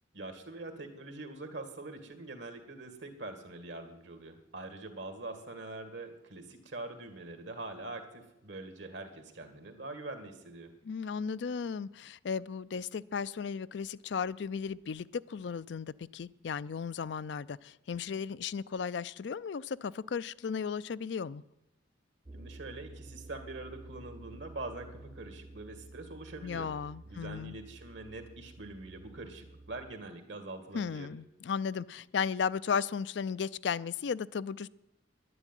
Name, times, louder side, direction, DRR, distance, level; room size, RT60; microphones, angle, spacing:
voice 1, 0.1-10.7 22.3-26.7 27.1-31.1, right 2 dB, 70° right, 2.1 m, -44 dB
voice 2, 10.8-21.4 26.4-27.6 30.7-34.7, left 6 dB, 65° left, 0.4 m, -35 dB
sound 1, 22.3-29.9, right 2 dB, 25° right, 0.5 m, -51 dB
11.0 x 11.0 x 9.1 m
head